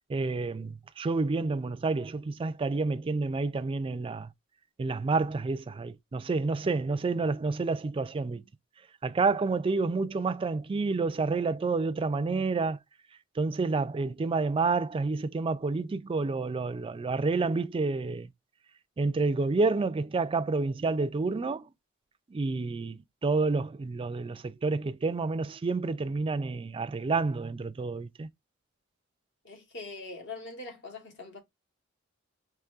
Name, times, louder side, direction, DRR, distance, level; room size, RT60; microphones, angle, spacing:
voice 1, 0.1-4.3 4.8-8.4 9.0-12.8 13.4-18.3 19.0-21.7 22.3-28.3, right 3 dB, 25° right, 0.3 m, -29 dB
voice 2, 29.4-31.4, left 3 dB, 65° left, 1.3 m, -42 dB
5.8 x 3.0 x 2.4 m
head